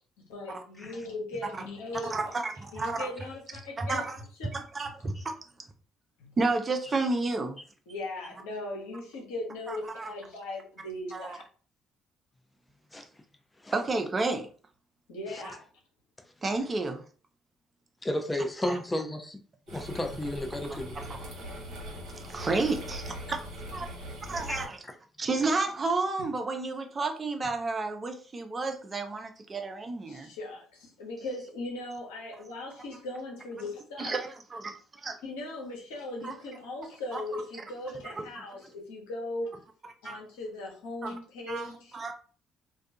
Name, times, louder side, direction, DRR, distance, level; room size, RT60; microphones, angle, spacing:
voice 1, 0.3-2.4 2.7-4.0 6.2-6.3 7.9-11.4 15.1-15.6 30.1-34.1 35.2-39.5 40.0-42.0, left 2 dB, 80° left, 0.8 m, -38 dB
voice 2, 2.1-3.1 3.8-4.2 4.5-5.3 6.4-7.6 9.7-10.1 11.1-11.4 13.7-14.5 16.4-17.0 18.6-18.8 19.7-19.8 21.0-21.3 22.3-23.1 23.7-23.9 24.3-24.8 25.2-30.3 34.0-35.2 36.2-36.3 37.1-37.2 38.2-38.3 40.0-40.2 41.0-41.2 41.5-41.7 41.9-42.1, right 3 dB, 35° right, 0.5 m, -31 dB
voice 3, 18.0-19.4 19.7-21.1 24.5-24.9, left 1 dB, 15° left, 0.5 m, -33 dB
sound 1, 19.7-24.7, equal, 65° right, 0.9 m, -41 dB
2.3 x 2.2 x 2.7 m
hypercardioid pair, 55°, 0 cm